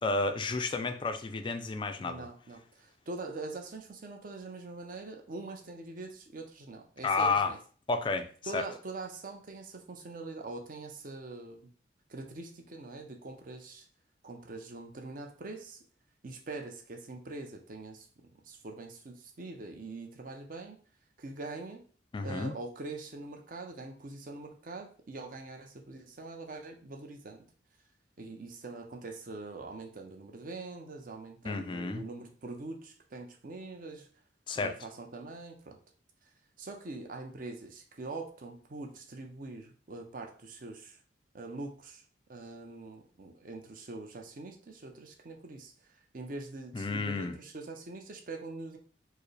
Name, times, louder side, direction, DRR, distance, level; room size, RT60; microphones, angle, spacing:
voice 1, 0.0-2.3 7.0-7.5 7.9-8.3 8.5-8.6 22.1-22.5 31.4-32.0 34.5-34.8 46.7-47.3, left 3 dB, 25° left, 0.3 m, -31 dB
voice 2, 2.0-7.6 8.5-11.7 12.1-13.9 14.2-15.8 16.2-20.8 21.2-21.8 22.2-27.4 28.2-34.1 34.6-35.8 36.6-41.0 41.3-42.0 42.3-48.8, right 3 dB, 45° right, 0.5 m, -43 dB
4.6 x 2.0 x 3.2 m
head